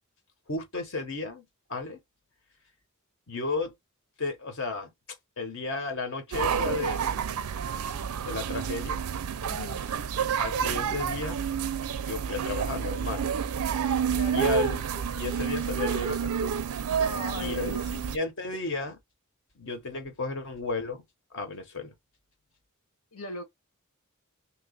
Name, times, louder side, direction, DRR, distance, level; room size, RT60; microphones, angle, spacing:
voice 1, 0.5-1.4 1.7-2.0 3.3-3.7 4.2-4.9 5.4-7.4 8.2-9.0 10.4-11.4 12.1-13.3 14.3-14.8 15.2-16.7 17.4-19.0 19.6-21.0 21.3-21.9, left 3 dB, 60° left, 1.0 m, -33 dB
sound 1, 6.3-18.2, right 7 dB, 85° right, 0.5 m, -29 dB
voice 2, 9.5-9.8 14.1-14.4 17.0-17.9 23.1-23.4, left 1 dB, 85° left, 1.5 m, -37 dB
2.9 x 2.3 x 3.7 m
head